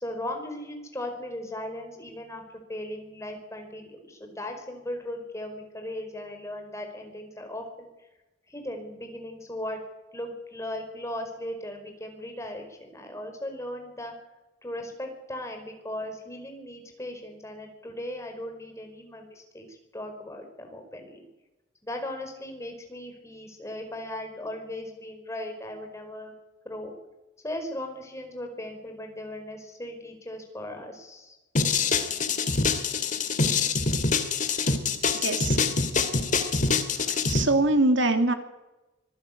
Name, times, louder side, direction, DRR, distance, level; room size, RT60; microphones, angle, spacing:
voice 1, 0.0-7.9 8.5-9.8 10.1-14.1 14.6-21.3 21.8-26.4 26.6-26.9 27.4-31.4, left 1 dB, 15° left, 4 dB, 5.0 m, -37 dB
sound 1, 31.6-37.4, left 4 dB, 45° left, 2.5 m, -25 dB
voice 2, 35.2-35.6 37.1-38.3, right 2 dB, 80° right, 7 dB, 2.8 m, -23 dB
25.0 x 15.5 x 8.6 m, 1.0 s
head